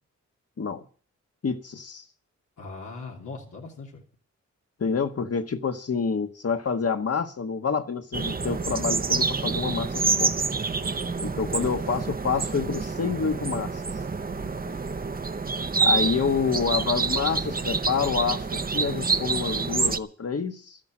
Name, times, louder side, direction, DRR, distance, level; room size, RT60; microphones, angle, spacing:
voice 1, 1.4-2.0 4.8-10.3 11.2-13.8 15.8-20.8, left 5 dB, 50° left, 1.4 m, -28 dB
voice 2, 2.6-4.0 10.7-11.7 14.3-15.0, left 3 dB, 85° left, 3.1 m, -42 dB
sound 1, 8.1-20.0, right 4 dB, 30° right, 0.8 m, -27 dB
12.5 x 10.5 x 7.5 m
wide cardioid pair, 85°, 30 cm